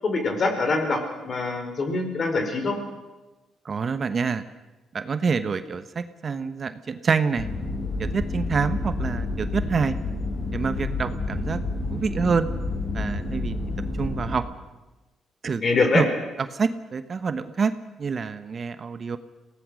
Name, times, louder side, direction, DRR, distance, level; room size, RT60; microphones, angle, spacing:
voice 1, 0.0-2.8 15.6-16.1, left 3 dB, 45° left, 5 dB, 4.8 m, -24 dB
voice 2, 3.6-4.4 4.9-7.5 8.0-9.9 10.5-11.6 11.9-12.5 12.9-13.6 14.0-14.4 15.4-15.6 15.9-16.1 16.5-17.7 18.0-19.2, right 5 dB, 45° right, 11 dB, 1.1 m, -26 dB
sound 1, 7.4-14.4, left 2 dB, 75° left, 7.9 m, -29 dB
23.5 x 18.0 x 6.4 m, 1.1 s
cardioid pair, 90°, 0 cm